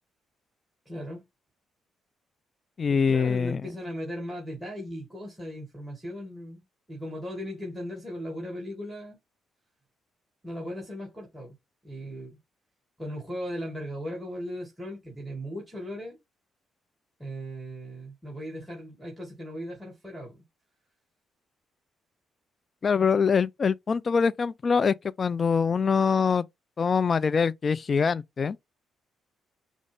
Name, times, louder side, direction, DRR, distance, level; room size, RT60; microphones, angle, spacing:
voice 1, 0.9-1.2 2.9-6.6 6.9-9.2 10.4-11.5 11.8-12.4 13.0-16.2 17.2-20.4, equal, 10° right, 2.4 m, -37 dB
voice 2, 2.8-3.6 22.8-26.4 26.8-28.6, left 5 dB, 40° left, 0.3 m, -24 dB
5.2 x 2.4 x 3.4 m
cardioid pair, 80°, 0 cm